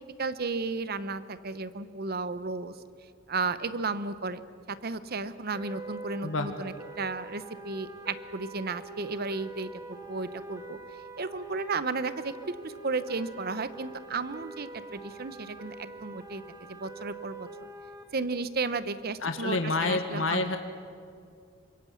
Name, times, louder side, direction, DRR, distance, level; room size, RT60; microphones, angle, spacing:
voice 1, 0.2-2.7 3.3-4.4 4.7-10.8 11.2-17.5 18.1-20.6, right 4 dB, 55° right, 14 dB, 0.9 m, -34 dB
sound 1, 5.5-18.0, right 3 dB, 20° right, 2.3 m, -44 dB
voice 2, 19.2-20.6, left 3 dB, 85° left, 7 dB, 1.4 m, -28 dB
26.0 x 22.0 x 7.2 m, 2.3 s
head